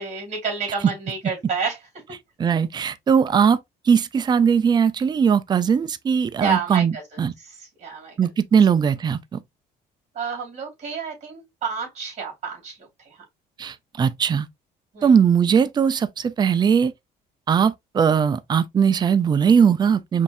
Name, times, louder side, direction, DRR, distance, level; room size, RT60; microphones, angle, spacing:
voice 1, 0.0-1.8 6.4-7.0 7.4-8.2 10.1-13.2 14.9-15.1, right 5 dB, 40° right, 2.8 m, -29 dB
voice 2, 2.4-3.6 3.8-6.9 7.2-7.3 8.2-9.4 13.6-14.5 15.0-16.9 17.5-20.2, right 7 dB, 25° right, 0.4 m, -19 dB
5.1 x 2.7 x 2.5 m
cardioid pair, 110°, 17 cm